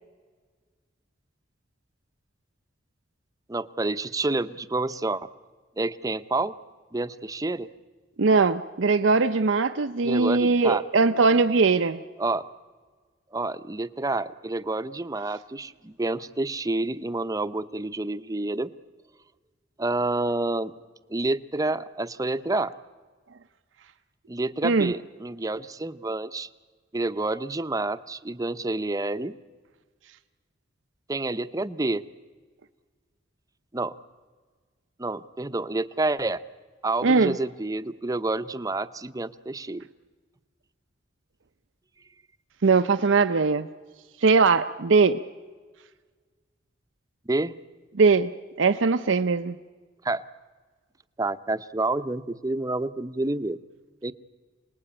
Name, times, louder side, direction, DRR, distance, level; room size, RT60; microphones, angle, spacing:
voice 1, 3.5-5.3 5.8-6.5 6.9-7.7 10.0-10.8 12.2-12.4 13.3-18.7 19.8-20.7 21.1-22.7 24.3-26.5 26.9-29.3 31.1-32.0 33.7-33.9 35.0-36.4 36.8-39.9 47.3-47.6 50.0-50.2 51.2-53.6 54.0-54.1, right 2 dB, 20° right, 13 dB, 0.7 m, -28 dB
voice 2, 8.2-12.0 24.6-24.9 37.0-37.3 42.6-43.7 44.2-45.2 48.0-48.3 48.6-49.6, right 4 dB, 80° right, 10 dB, 0.7 m, -20 dB
27.5 x 19.5 x 8.7 m, 1.5 s
head